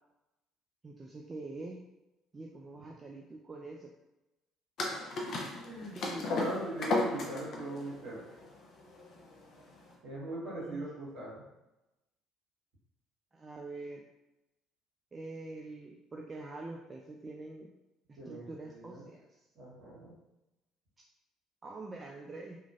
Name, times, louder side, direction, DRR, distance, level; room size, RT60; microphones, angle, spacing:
voice 1, 0.8-1.8 2.3-3.9 5.8-6.6 10.6-10.8 13.3-14.1 15.1-17.7 18.1-19.4 21.6-22.6, right 2 dB, 30° right, 0 dB, 0.3 m, -45 dB
sound 1, 4.8-9.9, left 2 dB, 50° left, 0.6 m, -35 dB
voice 2, 5.6-6.0 6.3-8.2 10.0-11.4 18.2-19.0 19.5-20.1, right 1 dB, 55° right, -6 dB, 1.3 m, -40 dB
2.9 x 2.4 x 2.4 m, 0.97 s
figure-of-eight pair, 55°, 0 cm